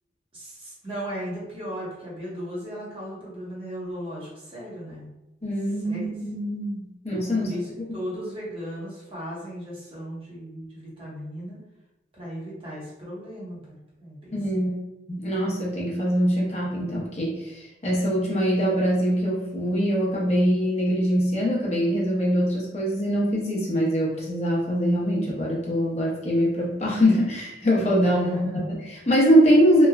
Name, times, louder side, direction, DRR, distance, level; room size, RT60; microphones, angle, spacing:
voice 1, 0.3-5.1 5.8-6.1 7.4-11.6 12.1-13.7 14.0-14.8 28.2-28.7, equal, 30° right, -7 dB, 0.9 m, -36 dB
voice 2, 5.4-7.5 7.9-8.0 14.3-14.7 15.1-29.9, equal, 35° left, -5 dB, 0.7 m, -23 dB
3.0 x 2.2 x 2.3 m, 0.96 s
head